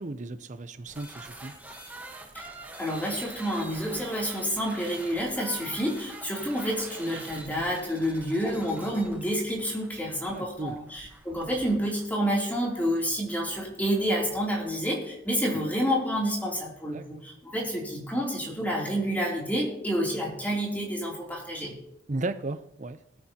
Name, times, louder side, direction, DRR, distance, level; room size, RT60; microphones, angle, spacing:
voice 1, 0.0-1.5 10.3-10.8 16.9-17.0 22.1-23.0, right 2 dB, 40° right, 12 dB, 0.6 m, -35 dB
sound 1, 0.9-14.1, right 2 dB, 10° right, 1.2 m, -45 dB
voice 2, 2.8-21.7, equal, 10° left, -3 dB, 3.0 m, -29 dB
20.5 x 9.1 x 2.9 m, 0.79 s
head